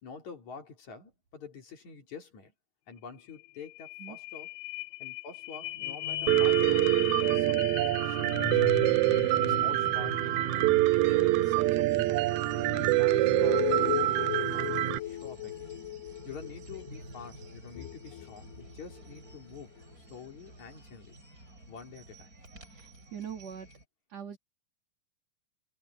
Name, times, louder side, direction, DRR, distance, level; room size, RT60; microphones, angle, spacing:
voice 1, 0.0-2.5 2.9-4.5 5.0-8.9 9.2-10.6 10.9-12.3 12.7-15.7 16.2-21.2 21.7-22.4, left 5 dB, 55° left, 4.4 m, -47 dB
sound 1, 3.0-3.1 3.3-19.3 19.8-19.9, left 14 dB, 75° left, 2.2 m, -38 dB
Piano, 6.3-15.0, right 17 dB, 90° right, 1.7 m, -25 dB
sound 2, 9.0-23.8, right 1 dB, 25° right, 7.1 m, -51 dB
voice 2, 22.7-23.7 24.1-24.4, right 8 dB, 50° right, 3.3 m, -42 dB
omnidirectional pair, 3.9 m